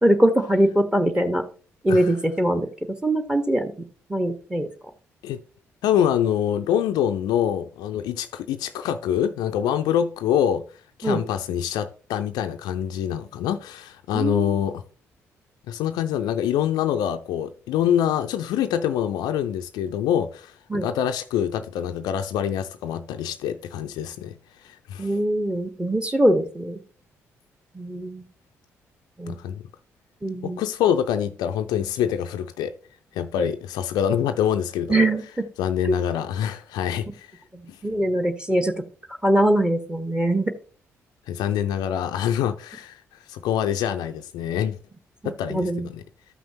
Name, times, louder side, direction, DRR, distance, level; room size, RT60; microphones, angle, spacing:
voice 1, 0.0-1.4 1.8-2.7 3.0-3.7 4.1-4.7 11.0-11.2 14.1-14.6 20.7-20.9 25.0-26.8 27.7-28.3 29.2-29.4 30.2-30.6 33.4-33.5 34.9-35.5 35.8-36.0 37.5-38.7 39.2-40.5 45.2-45.9, right 1 dB, 10° right, 1.2 m, -22 dB
voice 2, 5.8-10.6 11.0-14.8 15.7-24.4 24.6-25.1 29.3-29.6 30.4-32.7 33.1-35.1 35.6-37.3 37.7-37.8 41.3-43.0 43.3-44.8 45.2-46.0, left 9 dB, 60° left, 0.5 m, -25 dB
13.0 x 5.9 x 2.8 m
figure-of-eight pair, 40°, 8 cm